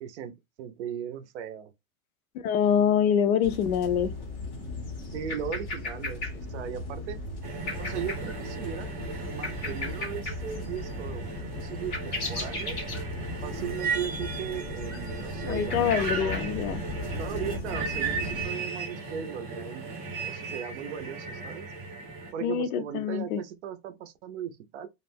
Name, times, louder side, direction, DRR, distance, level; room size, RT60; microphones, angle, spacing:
voice 1, 0.0-1.7 5.1-7.2 7.8-8.9 9.3-12.8 13.4-16.3 17.1-19.9 20.2-21.7 22.3-24.9, right 8 dB, 55° right, 0.5 m, -37 dB
voice 2, 2.4-4.1 15.4-16.8 22.4-23.4, left 8 dB, 85° left, 0.6 m, -25 dB
sound 1, 3.4-18.5, left 2 dB, 20° left, 0.5 m, -36 dB
sound 2, 7.4-22.3, right 4 dB, 20° right, 0.7 m, -36 dB
2.4 x 2.1 x 3.2 m
supercardioid pair, 165°, 42 cm